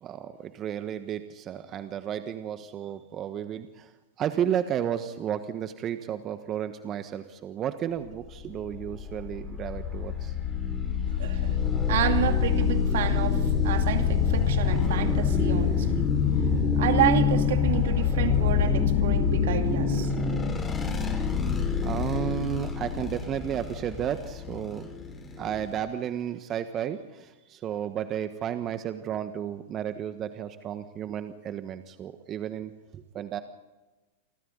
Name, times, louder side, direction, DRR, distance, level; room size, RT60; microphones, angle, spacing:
voice 1, 0.0-3.9 4.2-10.3 21.8-24.9 25.4-33.4, right 10 dB, 35° right, 9 dB, 1.4 m, -33 dB
sound 1, 8.3-25.7, left 6 dB, 20° left, 5.1 m, -26 dB
voice 2, 11.2-11.6 11.9-16.1 16.8-20.4, right 11 dB, 65° right, 6 dB, 2.5 m, -29 dB
29.0 x 24.0 x 4.0 m, 1.1 s
hypercardioid pair, 105°, 0 cm